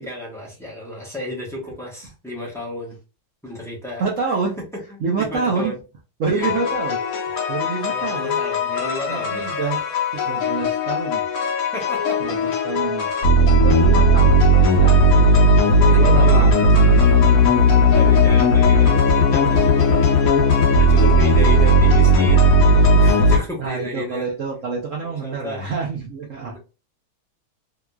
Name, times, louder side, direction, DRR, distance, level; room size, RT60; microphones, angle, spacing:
voice 1, 0.0-3.0 3.4-4.0 5.2-5.8 6.3-6.5 7.9-9.5 11.7-12.3 15.7-16.6 17.9-22.5 23.0-24.3 25.0-25.6 26.5-26.6, left 1 dB, 5° left, -4 dB, 0.3 m, -32 dB
voice 2, 4.0-4.6 5.0-5.7 6.2-7.0 7.5-8.4 9.0-9.8 10.1-11.3 12.2-13.1 13.4-15.1 15.5-15.6 16.0-17.5 23.6-26.6, right 4 dB, 80° right, -1 dB, 0.7 m, -27 dB
sound 1, 6.4-23.4, equal, 55° left, 1.0 m, -16 dB
3.6 x 2.9 x 2.3 m, 0.32 s
omnidirectional pair, 2.3 m